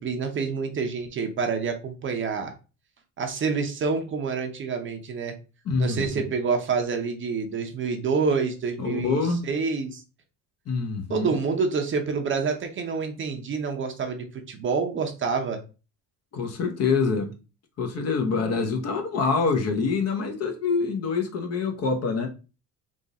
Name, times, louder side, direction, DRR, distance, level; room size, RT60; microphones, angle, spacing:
voice 1, 0.0-2.5 3.2-5.3 5.8-10.0 11.1-15.6, right 5 dB, 35° right, 0.7 m, -27 dB
voice 2, 5.6-6.2 8.8-9.4 10.7-11.4 16.3-17.3 17.8-22.3, left 4 dB, 45° left, 1.0 m, -25 dB
3.7 x 2.5 x 4.0 m
cardioid pair, 135°, 34 cm